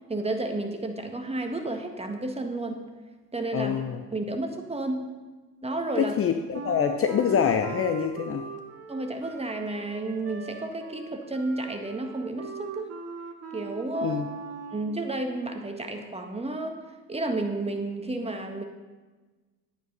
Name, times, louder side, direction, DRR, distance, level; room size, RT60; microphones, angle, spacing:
voice 1, 0.1-2.8 3.3-3.8 4.1-5.1 5.6-6.1 8.9-12.9 13.5-14.2 14.7-16.8 17.1-18.6, right 2 dB, 10° right, 5 dB, 1.6 m, -31 dB
voice 2, 3.5-4.0 6.0-8.4 14.0-14.3, left 7 dB, 25° left, 7 dB, 0.7 m, -25 dB
Wind instrument woodwind instrument, 6.5-15.0, right 6 dB, 30° right, 1.6 m, -40 dB
11.5 x 9.2 x 5.5 m, 1.3 s
hypercardioid pair, 70°, 50 cm